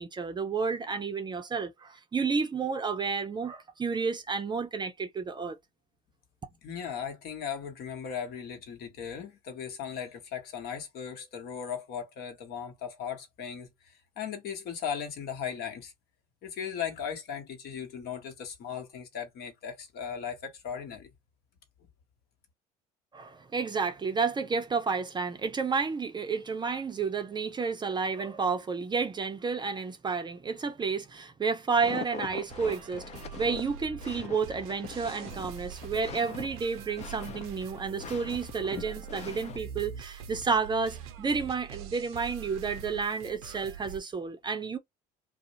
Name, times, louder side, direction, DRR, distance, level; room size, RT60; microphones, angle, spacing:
voice 1, 0.0-5.6 23.1-44.8, right 5 dB, 25° right, 0.6 m, -31 dB
voice 2, 6.6-13.7 14.2-15.9 16.4-21.1, left 7 dB, 55° left, 1.0 m, -37 dB
sound 1, 31.8-39.6, left 7 dB, 35° left, 0.5 m, -43 dB
sound 2, 32.5-44.0, right 7 dB, 70° right, 0.6 m, -44 dB
2.4 x 2.0 x 2.8 m
hypercardioid pair, 65°, 20 cm